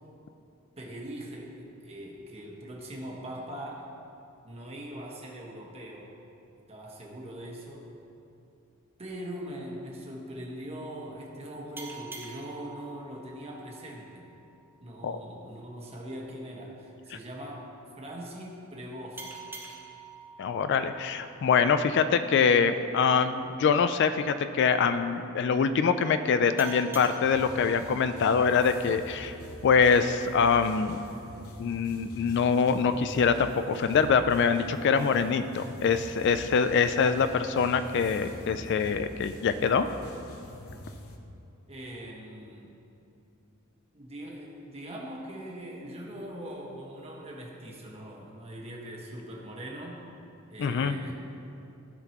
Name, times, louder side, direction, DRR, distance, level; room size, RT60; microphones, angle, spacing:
voice 1, 0.8-3.9 4.4-6.1 6.7-7.9 9.0-14.2 14.8-17.7 18.0-19.3 41.7-42.7 43.9-50.0 50.5-51.2, right 1 dB, 30° right, -3 dB, 1.4 m, -41 dB
sound 1, 11.8-15.0 19.2-22.4 26.6-29.5, right 4 dB, 10° right, 1.0 m, -47 dB
voice 2, 20.4-29.4 29.6-31.0 31.6-39.9 50.6-51.0, left 6 dB, 55° left, 10 dB, 0.3 m, -24 dB
sound 2, 27.2-41.2, left 1 dB, 80° left, 0.9 m, -46 dB
15.5 x 5.8 x 3.0 m, 2.7 s
head